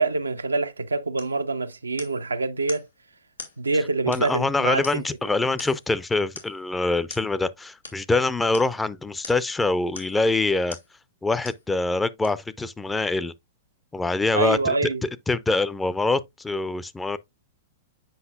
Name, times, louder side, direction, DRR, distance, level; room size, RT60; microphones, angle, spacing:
voice 1, 0.0-2.9 3.6-5.0 14.3-15.0, right 3 dB, 85° right, 0.5 m, -25 dB
sound 1, 1.2-1.4 2.0-2.3 2.7-2.9 3.4-3.6 4.1-4.5 4.8-5.2 5.6-5.9 6.4-6.6 7.1-7.3 7.8-8.0 8.5-8.7 9.2-9.5 9.9-10.2 10.7-10.9 11.4-11.7 12.2-12.3, left 3 dB, 90° left, 1.8 m, -41 dB
voice 2, 4.1-10.8 11.2-13.3 13.9-14.7 15.0-17.2, left 3 dB, 10° left, 0.5 m, -24 dB
7.9 x 5.4 x 2.3 m
figure-of-eight pair, 105°, 0 cm